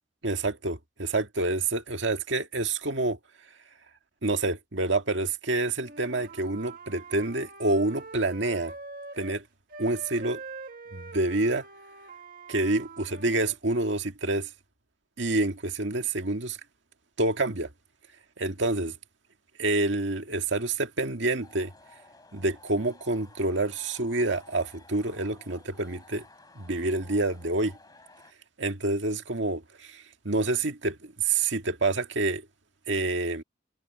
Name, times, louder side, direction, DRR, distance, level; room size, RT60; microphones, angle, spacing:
voice 1, 0.2-3.2 4.2-8.7 9.2-9.4 9.8-10.4 10.9-11.6 12.5-14.5 15.2-16.6 17.2-17.7 18.4-19.0 19.6-21.7 22.3-26.2 26.6-27.8 28.6-32.4 32.9-33.4, right 2 dB, 75° right, 1.9 m, -28 dB
Wind instrument woodwind instrument, 5.8-9.4 9.7-13.6, right 3 dB, 50° right, 1.9 m, -44 dB
sound 1, 21.4-28.3, left 3 dB, 20° left, 6.1 m, -54 dB
head